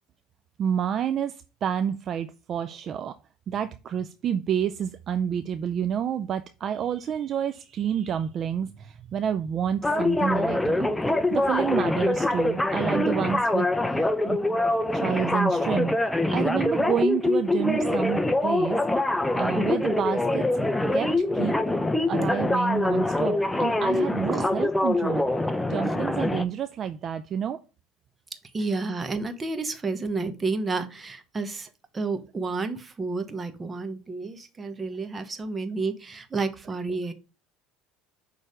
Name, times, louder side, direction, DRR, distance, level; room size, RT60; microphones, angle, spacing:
voice 1, 0.6-3.1 3.5-10.9 11.3-14.4 14.9-15.9 16.3-18.8 19.3-20.5 20.9-21.5 22.1-25.3 25.7-27.6, right 8 dB, 45° right, 0.4 m, -29 dB
sound 1, 9.8-26.4, left 2 dB, 10° left, 0.6 m, -24 dB
voice 2, 23.1-23.5 24.3-24.5 28.5-31.7 31.9-37.1, right 3 dB, 25° right, 1.0 m, -30 dB
6.5 x 3.3 x 4.9 m
supercardioid pair, 100°, 0 cm